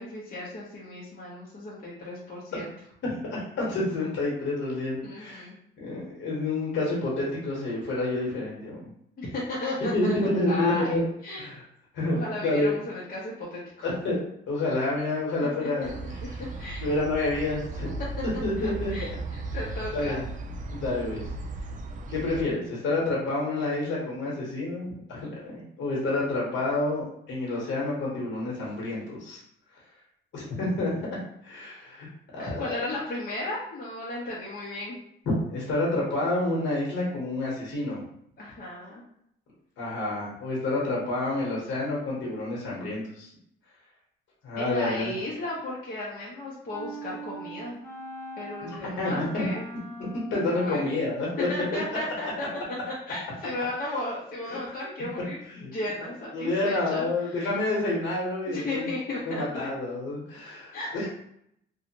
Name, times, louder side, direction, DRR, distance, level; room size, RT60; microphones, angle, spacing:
voice 1, 0.0-2.7 5.0-5.6 9.2-11.4 12.1-13.9 15.6-15.9 16.4-16.8 18.6-20.2 32.4-35.0 38.4-39.0 44.6-47.8 48.4-49.6 50.4-52.3 52.9-57.5 58.5-59.7 60.7-61.1, left 2 dB, 45° left, -6 dB, 0.9 m, -35 dB
voice 2, 3.0-5.5 5.8-8.9 9.9-10.1 10.3-11.0 11.4-11.6 11.9-12.8 13.8-14.2 14.5-15.9 16.3-16.4 16.8-17.9 18.4-18.9 19.9-20.2 20.7-21.2 22.1-29.4 30.3-30.9 31.4-33.0 35.3-38.0 39.8-43.3 44.4-45.1 48.6-49.5 50.0-52.0 54.5-54.6 55.5-55.7 56.3-58.9 59.3-61.1, left 2 dB, 70° left, -4 dB, 1.2 m, -29 dB
sound 1, 15.8-22.4, right 2 dB, 40° right, 0.4 m, -36 dB
sound 2, 46.7-50.6, right 1 dB, 15° left, 0.7 m, -41 dB
2.6 x 2.4 x 2.9 m, 0.73 s
cardioid pair, 90°, 20 cm